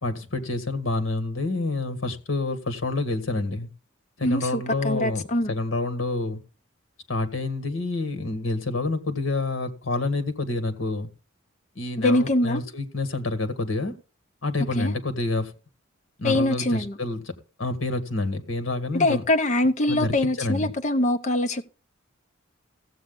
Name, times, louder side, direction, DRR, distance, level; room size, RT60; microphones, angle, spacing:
voice 1, 0.0-3.7 4.2-6.4 7.1-11.1 11.8-13.9 14.4-15.5 16.2-17.2 17.6-19.2 19.9-20.7, left 2 dB, 70° left, 1.8 m, -28 dB
voice 2, 4.2-5.5 12.0-12.6 14.8-14.9 16.2-17.0 18.9-21.6, left 1 dB, 35° left, 0.8 m, -23 dB
15.5 x 7.9 x 3.8 m
head